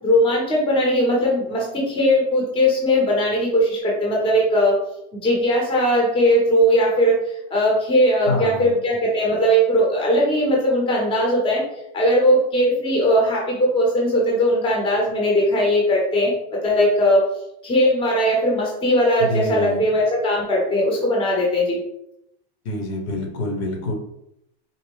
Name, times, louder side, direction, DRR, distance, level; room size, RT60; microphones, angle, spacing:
voice 1, 0.0-4.8 5.1-7.2 7.5-11.6 11.9-16.3 16.6-17.2 17.6-21.8, equal, 15° left, -3 dB, 0.9 m, -19 dB
voice 2, 8.2-8.7 19.2-19.8 22.6-23.9, left 1 dB, 70° left, 1 dB, 1.3 m, -26 dB
4.2 x 2.1 x 3.5 m, 0.79 s
supercardioid pair, 160°, 33 cm